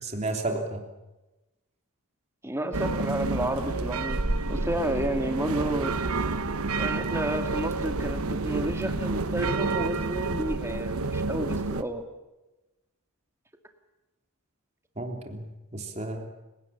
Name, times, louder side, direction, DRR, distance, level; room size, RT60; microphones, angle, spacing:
voice 1, 0.0-0.8 15.0-15.5 15.7-16.3, right 2 dB, 30° right, 3 dB, 3.3 m, -32 dB
voice 2, 2.4-5.9 6.8-12.0, right 1 dB, 10° right, 5 dB, 2.2 m, -31 dB
sound 1, 2.7-11.8, right 3 dB, 80° right, 1.2 m, -29 dB
30.0 x 17.5 x 7.3 m, 1.0 s
head